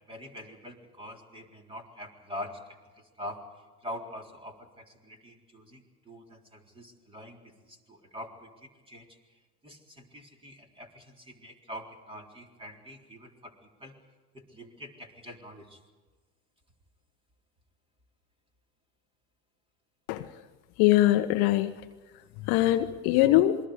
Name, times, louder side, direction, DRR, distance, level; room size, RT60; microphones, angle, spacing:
voice 1, 0.1-2.6 3.2-3.4 3.8-7.4 7.6-9.1 9.6-13.5 13.8-14.0 14.3-15.8, left 1 dB, 10° right, 2 dB, 3.9 m, -44 dB
voice 2, 20.8-21.7 22.5-23.6, left 15 dB, 50° left, 7 dB, 1.2 m, -22 dB
28.0 x 22.5 x 5.1 m, 1.3 s
hypercardioid pair, 95°, 47 cm